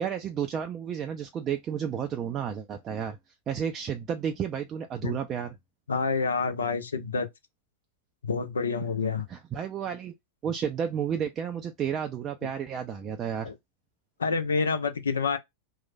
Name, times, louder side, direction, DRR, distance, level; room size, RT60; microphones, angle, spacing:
voice 1, 0.0-3.2 3.5-5.5 9.3-10.1 10.4-13.5, right 8 dB, 30° right, 0.3 m, -31 dB
voice 2, 5.9-7.3 8.2-9.3 13.4-13.5 14.2-15.4, left 4 dB, 70° left, 0.4 m, -28 dB
3.1 x 2.0 x 2.4 m
figure-of-eight pair, 90°, 0 cm